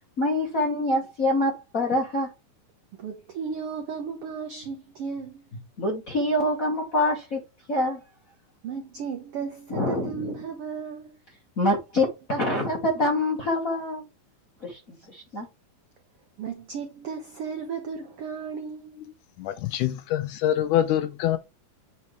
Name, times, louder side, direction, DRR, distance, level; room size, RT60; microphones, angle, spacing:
voice 1, 0.2-2.3 5.8-7.4 7.7-8.0 9.7-10.3 11.6-14.0 14.6-15.5, left 1 dB, 50° left, 1.0 m, -25 dB
voice 2, 2.9-5.4 8.6-11.2 16.4-19.0, right 6 dB, 75° right, 1.3 m, -35 dB
voice 3, 19.4-21.4, left 12 dB, 75° left, 2.0 m, -25 dB
8.8 x 4.1 x 3.2 m
omnidirectional pair, 3.9 m